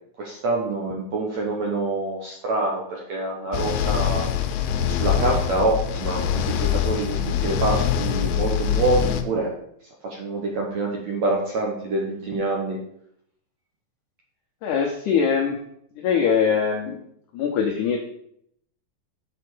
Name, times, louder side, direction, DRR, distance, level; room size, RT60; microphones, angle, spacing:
voice 1, 0.2-4.3 4.9-9.5 10.2-12.8, right 2 dB, 60° right, -2 dB, 2.0 m, -26 dB
sound 1, 3.5-9.2, left 9 dB, 90° left, 2.4 m, -24 dB
voice 2, 14.6-15.6 16.0-17.0 17.3-18.0, left 6 dB, 70° left, 2 dB, 2.1 m, -22 dB
7.5 x 4.3 x 6.1 m, 0.70 s
omnidirectional pair, 4.1 m